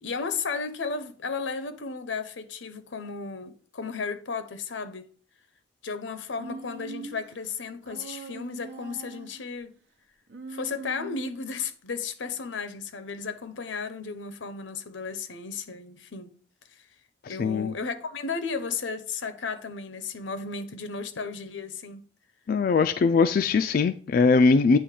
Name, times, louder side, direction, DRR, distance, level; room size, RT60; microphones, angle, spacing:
voice 1, 0.0-5.1 5.8-9.7 10.5-16.3 16.8-16.9 17.3-22.0, left 5 dB, 85° left, 0.7 m, -34 dB
Human voice, 6.4-7.3 7.9-9.4 10.3-11.6, right 4 dB, 75° right, 0.9 m, -41 dB
voice 2, 17.2-17.7 22.5-24.8, left 4 dB, 50° left, 0.3 m, -21 dB
8.6 x 3.0 x 4.9 m
head